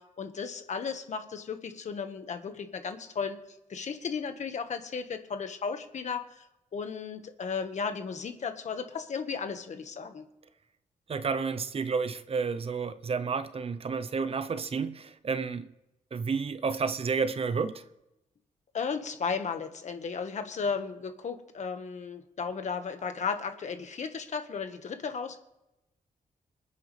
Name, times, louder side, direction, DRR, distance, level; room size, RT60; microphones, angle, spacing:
voice 1, 0.0-3.4 3.7-6.4 6.7-10.2 18.7-25.4, left 5 dB, 60° left, 1.5 m, -35 dB
voice 2, 11.1-15.7 16.1-17.8, right 5 dB, 45° right, 0.8 m, -31 dB
26.0 x 9.7 x 3.4 m
wide cardioid pair, 110°, 14 cm